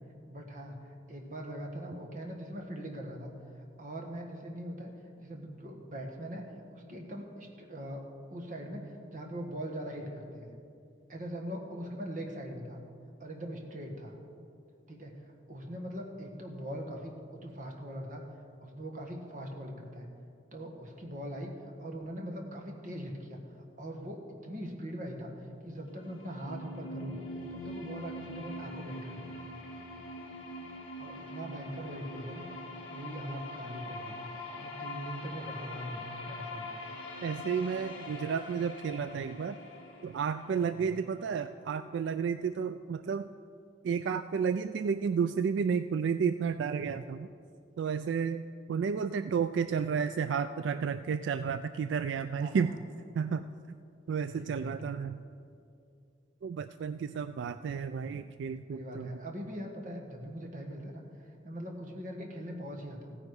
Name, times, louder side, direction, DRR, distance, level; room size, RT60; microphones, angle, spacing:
voice 1, 0.3-3.3 3.8-4.9 5.2-10.5 11.1-12.8 13.2-14.1 14.9-18.2 18.6-20.1 20.5-27.2 27.5-29.6 30.9-32.5 32.7-34.3 34.6-36.8 40.8-40.9 52.4-52.7 54.3-54.9 58.7-61.0 61.3-63.2, equal, 45° right, 2 dB, 1.6 m, -41 dB
sound 1, 25.7-41.6, left 2 dB, 30° left, 2.3 m, -44 dB
voice 2, 37.2-39.6 40.0-43.3 43.8-47.3 47.8-52.7 53.1-53.5 54.1-55.2 56.4-59.2, right 6 dB, 75° right, 11 dB, 0.3 m, -32 dB
15.5 x 9.8 x 4.8 m, 2.4 s
head